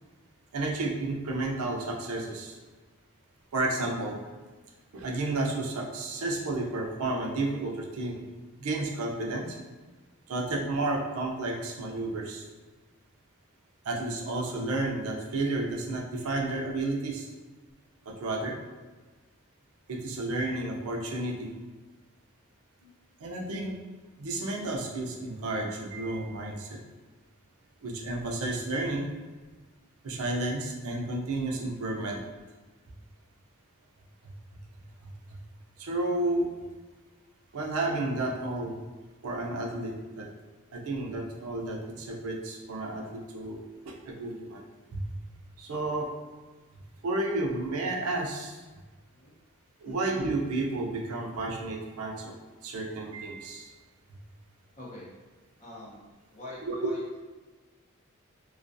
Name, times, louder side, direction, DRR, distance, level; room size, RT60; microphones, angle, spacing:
voice 1, 0.5-2.6 3.5-4.2 4.9-8.3 8.6-9.6 10.3-12.4 13.9-17.3 18.1-18.6 19.9-21.5 23.2-23.7 24.2-26.8 27.8-29.1 30.0-32.2 35.8-36.5 37.5-38.8 39.2-40.3 40.7-43.6 43.9-44.7 44.9-45.0 45.6-46.1 47.0-48.6 49.8-52.3 52.6-53.7 56.7-56.8, right 2 dB, 85° right, 0 dB, 0.5 m, -31 dB
voice 2, 55.6-56.0 56.3-57.0, left 2 dB, 30° left, -6 dB, 0.7 m, -44 dB
2.3 x 2.2 x 2.5 m, 1.3 s
head